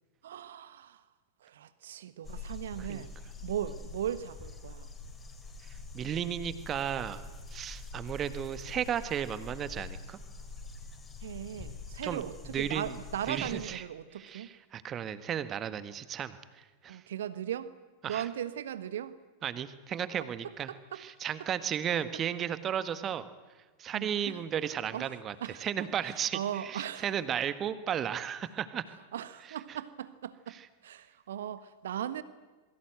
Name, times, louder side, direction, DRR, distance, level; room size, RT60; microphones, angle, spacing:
voice 1, 0.2-1.0 1.4-3.1 3.4-4.9 11.2-14.5 16.9-17.7 18.1-19.2 20.7-21.0 23.9-24.4 24.9-27.1 29.1-30.5 30.8-32.2, right 10 dB, 60° right, 1.4 m, -38 dB
sound 1, 2.2-13.8, left 3 dB, 15° left, 5.0 m, -45 dB
voice 2, 5.9-7.2 7.5-10.2 12.0-12.2 12.5-13.0 13.3-13.8 14.1-16.4 16.8-17.0 18.0-18.3 19.4-23.3 23.8-28.8 29.7-29.8 30.5-30.7, right 9 dB, 25° right, 1.5 m, -34 dB
27.5 x 22.0 x 8.0 m
figure-of-eight pair, 90°, 0 cm